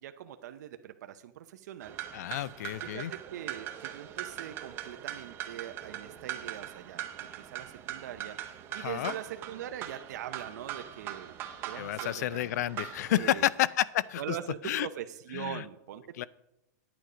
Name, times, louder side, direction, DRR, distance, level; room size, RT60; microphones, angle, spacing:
voice 1, 0.0-1.9 2.3-2.5 2.8-11.4 11.6-12.5 13.1-13.5 14.2-16.3, right 11 dB, 65° right, 9 dB, 0.6 m, -42 dB
sound 1, 1.8-13.5, right 11 dB, 25° right, 0.7 m, -41 dB
voice 2, 2.1-3.1 8.7-9.1 11.8-14.4 14.6-14.9 15.3-15.6 16.2-16.3, left 13 dB, 60° left, 21 dB, 0.4 m, -30 dB
9.5 x 9.0 x 4.9 m, 0.87 s
supercardioid pair, 170°, 10 cm